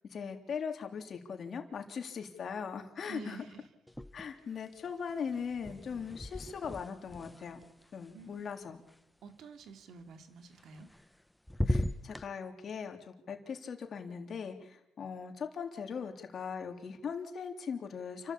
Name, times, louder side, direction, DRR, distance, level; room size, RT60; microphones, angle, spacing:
voice 1, 0.1-3.4 4.1-7.6 7.9-8.8 11.6-13.0 13.3-18.3, left 6 dB, 55° left, 4 dB, 3.4 m, -40 dB
voice 2, 3.1-3.7 8.1-8.5 9.2-10.9, right 5 dB, 70° right, 8 dB, 2.6 m, -49 dB
sound 1, 3.9-4.6 4.8-9.0 10.6-11.2 11.5-12.3, left 1 dB, 5° left, 0.9 m, -38 dB
28.5 x 13.0 x 8.7 m, 0.86 s
cardioid pair, 90°, 0 cm